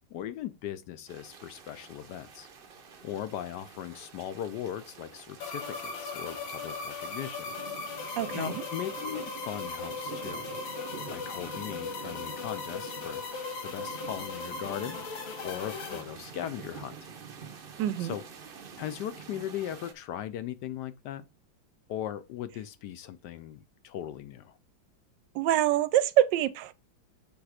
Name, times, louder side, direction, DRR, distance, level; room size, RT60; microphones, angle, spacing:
voice 1, 0.1-2.5 3.0-7.5 8.3-10.5 11.1-13.2 13.6-15.0 15.4-17.1 18.0-18.2 18.8-21.3 21.9-24.6, left 11 dB, 70° left, 1.1 m, -38 dB
sound 1, 1.1-19.9, right 6 dB, 55° right, 0.6 m, -47 dB
sound 2, 5.4-16.0, left 4 dB, 90° left, 2.2 m, -38 dB
voice 2, 8.2-8.6 17.8-18.1 25.3-26.7, right 12 dB, 75° right, 1.1 m, -25 dB
7.3 x 3.5 x 4.9 m
omnidirectional pair, 2.1 m